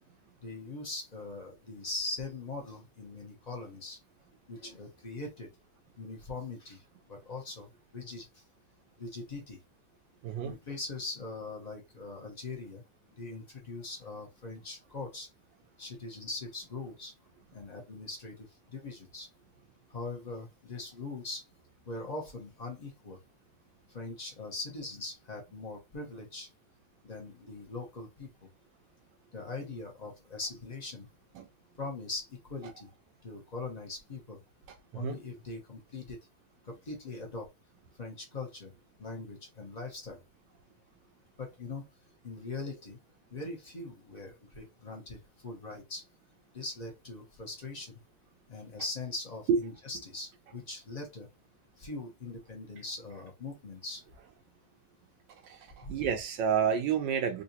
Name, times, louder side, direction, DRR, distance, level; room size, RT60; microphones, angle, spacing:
voice 1, 0.4-4.0 4.5-5.5 6.0-6.8 7.1-8.3 9.0-9.6 10.4-12.8 13.2-15.3 15.8-17.1 17.5-19.3 19.9-21.4 21.8-23.2 23.9-26.5 27.0-28.3 29.3-31.1 31.8-32.9 33.2-34.4 34.9-36.2 36.6-37.5 38.0-38.7 39.0-40.2 41.4-41.8 42.2-43.0 43.3-46.0 46.5-48.0 48.5-51.3 51.8-54.0 55.8-56.0, left 3 dB, 35° left, 0.7 m, -41 dB
voice 2, 10.2-10.5 31.4-31.5 35.0-35.2 49.5-49.6 55.4-57.4, right 7 dB, 75° right, 1.2 m, -29 dB
3.8 x 2.5 x 2.7 m
omnidirectional pair, 2.2 m